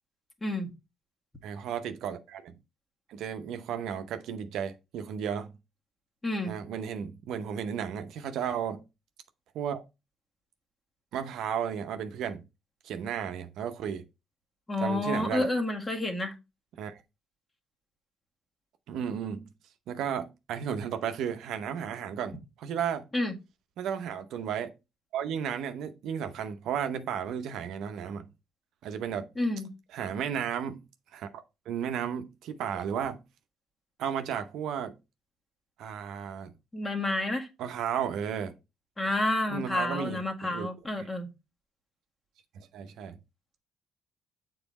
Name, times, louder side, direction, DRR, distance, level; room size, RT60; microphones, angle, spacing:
voice 1, 1.4-2.5 3.1-5.5 6.5-8.8 9.5-9.8 11.1-12.4 12.8-14.0 14.8-15.5 16.8-17.0 18.9-19.5 19.9-23.0 23.8-24.7 25.1-28.3 28.8-29.3 29.9-30.8 31.1-33.2 34.0-34.9 35.8-36.5 37.6-38.5 39.5-40.7 41.0-41.1 42.5-43.2, right 8 dB, 70° right, 0.8 m, -34 dB
voice 2, 6.2-6.5 14.7-16.4 23.1-23.3 29.4-29.7 36.7-37.5 39.0-41.3, left 2 dB, 25° left, 1.7 m, -29 dB
7.0 x 3.9 x 4.1 m
hypercardioid pair, 55°, 0 cm